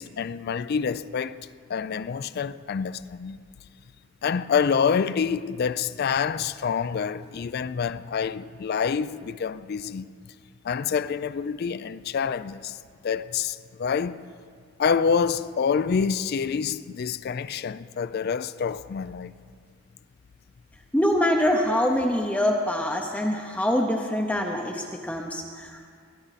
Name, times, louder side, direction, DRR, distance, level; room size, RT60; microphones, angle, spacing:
voice 1, 0.0-3.4 4.2-10.1 10.6-14.2 14.8-19.3, left 6 dB, 45° left, 0.3 m, -27 dB
voice 2, 20.9-25.9, left 1 dB, 5° left, 0.6 m, -24 dB
20.5 x 11.5 x 4.1 m
head